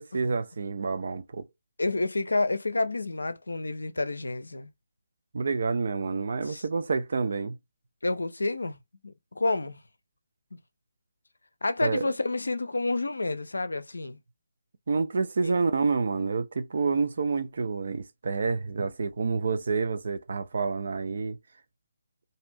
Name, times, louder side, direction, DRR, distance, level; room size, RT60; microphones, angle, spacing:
voice 1, 0.0-1.5 5.3-7.6 11.8-12.1 14.9-21.4, right 4 dB, 50° right, 0.5 m, -28 dB
voice 2, 1.8-4.7 6.5-6.6 8.0-8.8 9.0-9.8 10.5-10.6 11.6-14.2 15.4-15.6, left 2 dB, 70° left, 0.5 m, -29 dB
2.7 x 2.5 x 3.1 m
figure-of-eight pair, 145°, 0 cm